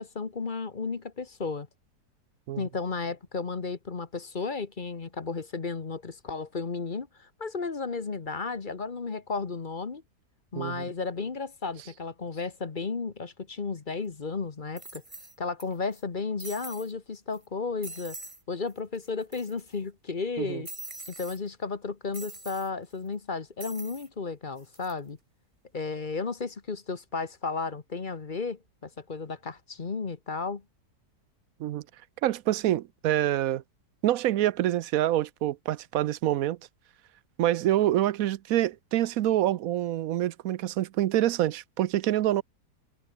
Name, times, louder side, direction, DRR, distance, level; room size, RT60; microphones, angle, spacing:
voice 1, 0.0-1.7 2.6-10.0 10.5-15.0 15.4-18.2 18.5-20.7 21.1-25.2 25.7-30.6, left 4 dB, 30° left, 1.2 m, -33 dB
sound 1, 13.9-14.0 14.8-15.6 15.9-16.0 16.4-16.9 17.3-17.5 17.8-18.4 18.7-18.8 19.0-19.7 20.6-21.4 22.1-22.7 23.6-24.1 24.6-24.9, right 2 dB, 20° right, 2.5 m, -43 dB
voice 2, 32.2-33.6 34.0-36.6 37.4-42.4, right 13 dB, 65° right, 0.9 m, -26 dB
omnidirectional pair, 1.8 m